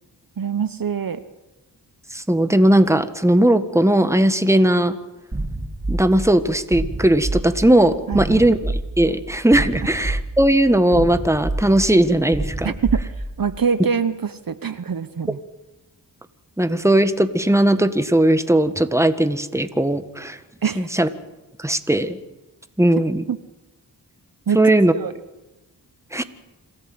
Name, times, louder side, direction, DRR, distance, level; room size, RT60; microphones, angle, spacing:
voice 1, 0.4-1.2 8.1-8.5 12.6-13.1 13.4-15.4 20.6-20.9 23.3-23.4 24.5-24.6 24.9-25.1, right 7 dB, 55° right, 12 dB, 1.0 m, -24 dB
voice 2, 2.1-5.0 5.9-12.7 16.6-20.4 20.8-21.1 21.6-22.2 22.8-23.2 24.5-24.9 26.1-26.2, right 1 dB, 5° right, 10 dB, 1.6 m, -18 dB
sound 1, 5.3-13.6, right 1 dB, 25° right, 4.1 m, -28 dB
26.5 x 14.0 x 7.9 m, 1.0 s
cardioid pair, 40°, 42 cm